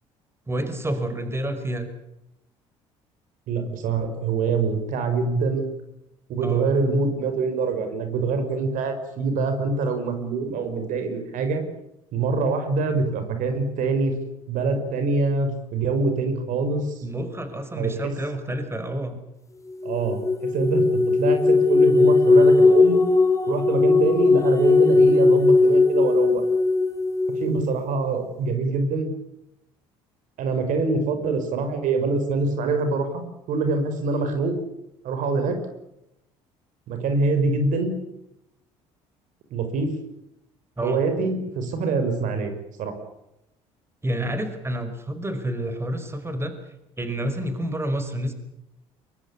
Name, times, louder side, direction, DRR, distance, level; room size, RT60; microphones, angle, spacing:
voice 1, 0.5-1.9 6.4-6.7 17.0-19.2 40.8-41.0 44.0-48.3, right 1 dB, 20° right, 8 dB, 5.3 m, -29 dB
voice 2, 3.5-5.6 6.3-11.6 12.1-14.1 14.5-17.0 17.8-18.1 19.8-23.0 23.5-26.4 27.4-29.1 30.4-33.2 33.5-34.5 35.0-35.6 36.9-37.9 39.5-39.9 40.8-42.5 42.8-42.9, right 3 dB, 65° right, 8 dB, 5.5 m, -24 dB
sound 1, 19.8-27.6, left 3 dB, 20° left, 3.6 m, -18 dB
23.0 x 22.5 x 8.5 m, 0.86 s
supercardioid pair, 70°, 14 cm